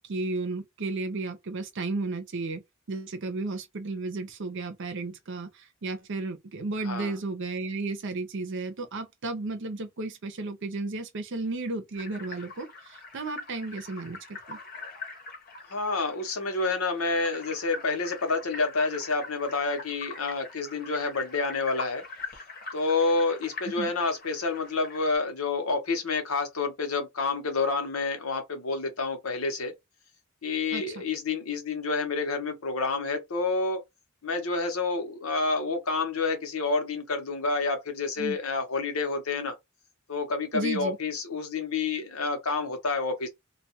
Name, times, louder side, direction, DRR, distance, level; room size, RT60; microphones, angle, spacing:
voice 1, 0.1-2.6 2.9-14.6 23.8-23.9 30.7-30.8 38.2-38.4 40.5-41.0, right 3 dB, 60° right, 0.6 m, -33 dB
sound 1, 11.9-25.2, left 3 dB, 45° left, 0.9 m, -43 dB
voice 2, 15.7-22.0 22.7-29.7 30.4-33.8 34.2-39.5 40.1-43.3, left 3 dB, 75° left, 0.9 m, -29 dB
2.3 x 2.2 x 2.8 m
head